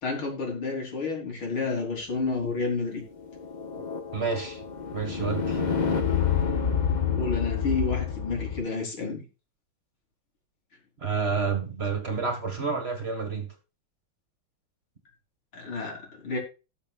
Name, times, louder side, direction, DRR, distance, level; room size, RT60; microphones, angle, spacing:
voice 1, 0.0-3.1 7.1-9.2 15.5-16.4, left 3 dB, 80° left, 4.5 m, -30 dB
sound 1, 3.0-8.6, left 7 dB, 30° left, 0.9 m, -28 dB
voice 2, 4.1-4.6 4.9-5.7 11.0-13.5, right 5 dB, 30° right, 1.8 m, -29 dB
19.0 x 6.7 x 2.4 m
omnidirectional pair, 2.2 m